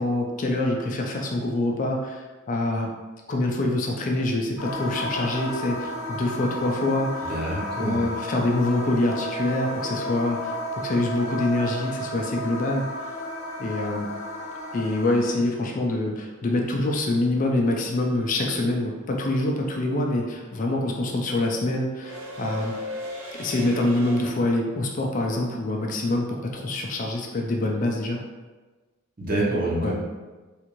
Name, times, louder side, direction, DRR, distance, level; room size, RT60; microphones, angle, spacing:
voice 1, 0.0-2.2 2.5-2.9 3.3-7.3 7.8-12.9 13.6-14.1 14.7-22.7 23.4-28.2 29.8-29.9, left 2 dB, 40° left, 1 dB, 0.4 m, -25 dB
sound 1, 4.6-15.3, left 1 dB, 75° left, 0.6 m, -33 dB
voice 2, 7.3-8.0 29.2-29.9, right 1 dB, 45° right, -5 dB, 0.8 m, -26 dB
sound 2, 8.0-12.1 14.5-14.6 15.9-16.2 16.4-24.2, left 1 dB, 85° right, 0.7 m, -40 dB
3.5 x 2.4 x 2.9 m, 1.3 s
head